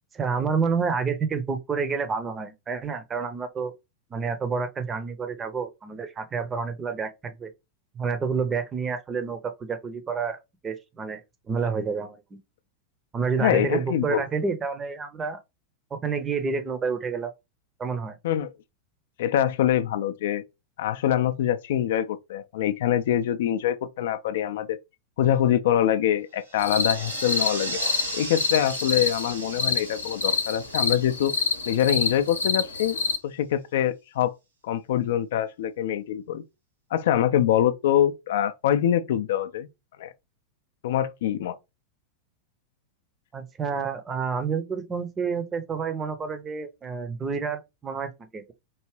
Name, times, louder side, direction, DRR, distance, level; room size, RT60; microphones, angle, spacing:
voice 1, 0.1-3.7 4.1-7.5 7.9-11.2 11.5-12.4 13.1-15.4 15.9-17.3 17.8-18.2 43.3-48.5, right 5 dB, 20° right, 0.6 m, -29 dB
voice 2, 13.4-14.2 18.2-18.5 19.2-20.4 20.8-24.8 25.2-27.8 28.1-31.3 31.7-33.0 33.2-34.3 34.6-36.4 36.9-39.7 40.0-40.1 40.8-41.6, left 11 dB, 55° left, 0.3 m, -24 dB
sound 1, 26.4-32.2, right 2 dB, 75° right, 1.5 m, -37 dB
sound 2, 26.6-33.2, left 5 dB, 75° left, 0.7 m, -28 dB
4.6 x 2.8 x 3.1 m
figure-of-eight pair, 90°, 0 cm